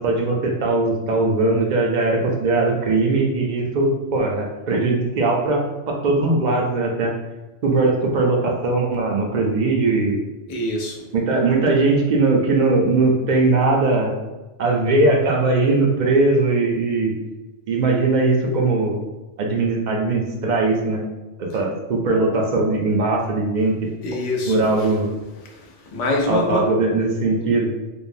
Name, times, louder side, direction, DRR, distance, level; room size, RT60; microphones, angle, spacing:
voice 1, 0.0-7.1 7.6-10.2 11.1-14.1 14.6-17.2 17.7-19.0 19.4-21.0 21.4-23.9 24.5-25.1 26.3-27.8, right 3 dB, 55° right, 0 dB, 0.5 m, -20 dB
voice 2, 10.5-11.0 24.0-24.9 25.4-26.6, left 1 dB, 70° left, 0 dB, 0.9 m, -25 dB
3.4 x 2.0 x 2.5 m, 1.1 s
omnidirectional pair, 1.2 m